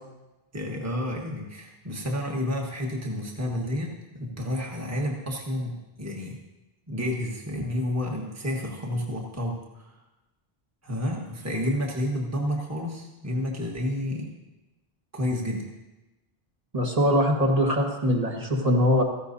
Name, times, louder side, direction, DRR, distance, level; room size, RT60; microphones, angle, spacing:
voice 1, 0.5-6.4 6.9-10.0 10.8-14.3 15.1-15.7, left 1 dB, 15° right, -1 dB, 1.5 m, -30 dB
voice 2, 16.7-19.0, equal, 40° right, -1 dB, 1.7 m, -22 dB
16.0 x 14.0 x 2.7 m, 1.0 s
omnidirectional pair, 1.0 m